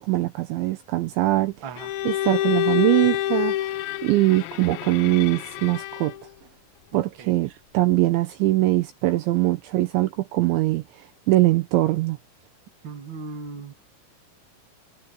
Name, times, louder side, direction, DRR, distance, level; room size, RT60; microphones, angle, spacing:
voice 1, 0.0-1.8 2.0-3.6 4.0-6.1 6.9-10.8 11.3-12.2, right 18 dB, 75° right, 2.8 m, -22 dB
Bowed string instrument, 1.8-6.3, left 13 dB, 85° left, 3.9 m, -27 dB
voice 2, 6.9-7.3 12.8-13.7, right 4 dB, 40° right, 1.9 m, -37 dB
omnidirectional pair, 6.0 m